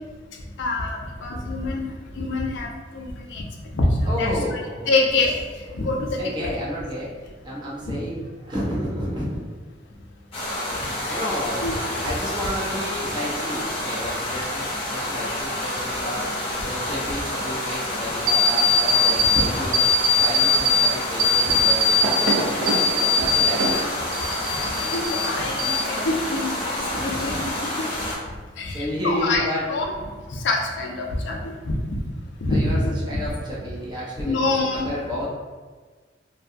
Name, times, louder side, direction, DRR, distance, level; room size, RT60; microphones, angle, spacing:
voice 1, 0.6-1.9 2.2-2.7 2.9-3.4 3.7-3.8 4.2-4.3 4.9-5.3 5.7-6.1 6.4-6.5 7.9-8.0 11.1-11.2 11.6-11.7 24.9-27.4 28.6-29.4 29.7-29.8 30.4-31.7 32.4-32.9 34.2-34.9, left 2 dB, 70° left, 1 dB, 0.4 m, -25 dB
voice 2, 4.0-4.9 6.1-9.4 10.6-11.7 12.0-16.3 16.6-19.8 20.1-22.6 23.1-23.9 26.9-27.5 28.7-29.9 32.5-32.8 33.1-35.3, equal, 25° right, -7 dB, 0.7 m, -31 dB
sound 1, 10.3-28.2, left 1 dB, 30° left, 0.7 m, -29 dB
sound 2, 18.3-19.4 19.7-20.9 21.2-23.8 24.1-25.3 25.6-26.2, left 3 dB, 85° right, 0.5 m, -20 dB
2.7 x 2.2 x 2.4 m, 1.4 s
head